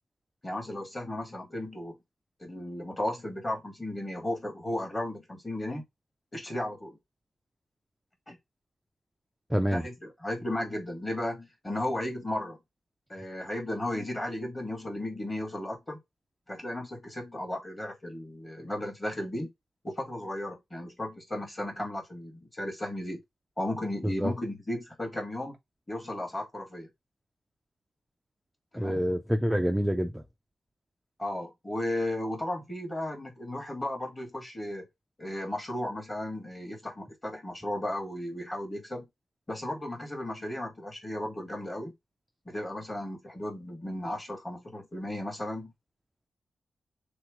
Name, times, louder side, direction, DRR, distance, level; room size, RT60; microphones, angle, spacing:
voice 1, 0.4-2.0 2.4-5.8 6.3-7.0 8.3-8.4 9.7-12.6 13.1-16.0 16.5-19.5 19.8-23.2 23.6-25.6 25.9-26.9 28.7-29.0 31.2-34.9 35.2-39.0 39.5-41.9 42.4-45.7, left 1 dB, 15° left, 1.3 m, -35 dB
voice 2, 9.5-9.9 24.0-24.3 28.8-30.2, equal, 5° right, 0.3 m, -27 dB
3.4 x 3.0 x 4.6 m
wide cardioid pair, 175°, 0 cm